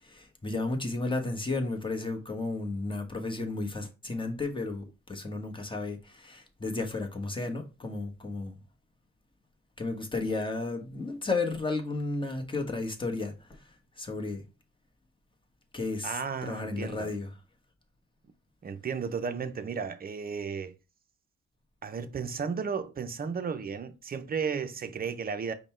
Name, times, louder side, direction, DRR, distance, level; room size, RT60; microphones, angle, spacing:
voice 1, 0.1-8.5 9.8-13.3 14.0-14.4 15.7-16.1 16.4-17.3, left 3 dB, 15° left, 1.1 m, -33 dB
voice 2, 16.0-17.1 18.6-20.7 21.8-25.5, right 6 dB, 30° right, 0.6 m, -34 dB
5.2 x 2.2 x 4.3 m
cardioid pair, 90°, 30 cm